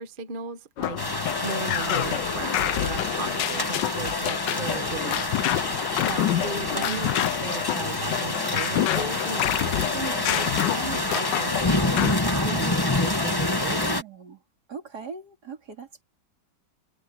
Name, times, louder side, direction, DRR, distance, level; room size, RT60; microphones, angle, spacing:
voice 1, 0.0-13.9, right 4 dB, 30° right, 1.1 m, -37 dB
sound 1, 0.8-12.2, left 13 dB, 70° left, 1.2 m, -28 dB
sound 2, 1.0-14.0, left 2 dB, 15° left, 1.3 m, -27 dB
voice 2, 6.9-7.2 13.7-14.4 14.7-16.0, right 6 dB, 55° right, 3.2 m, -40 dB
omnidirectional pair, 2.1 m